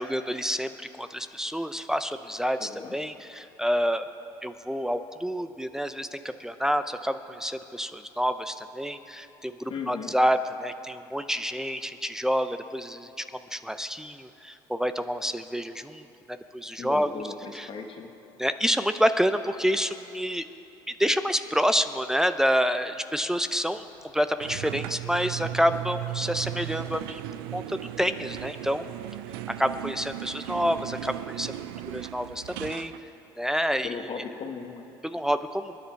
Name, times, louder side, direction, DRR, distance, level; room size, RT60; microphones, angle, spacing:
voice 1, 0.0-4.1 4.4-13.2 13.5-17.1 17.5-17.7 18.4-20.4 21.0-23.8 24.1-27.2 27.5-28.9 29.5-31.5 31.8-32.9 33.4-34.1 35.0-35.8, equal, 5° right, 10 dB, 0.7 m, -28 dB
voice 2, 2.6-3.0 9.7-10.1 16.8-18.1 33.8-34.9, left 5 dB, 45° left, 4 dB, 1.5 m, -37 dB
sound 1, 24.4-33.0, right 14 dB, 85° right, 0.5 m, -36 dB
28.5 x 10.0 x 4.7 m, 2.9 s
supercardioid pair, 80°, 12 cm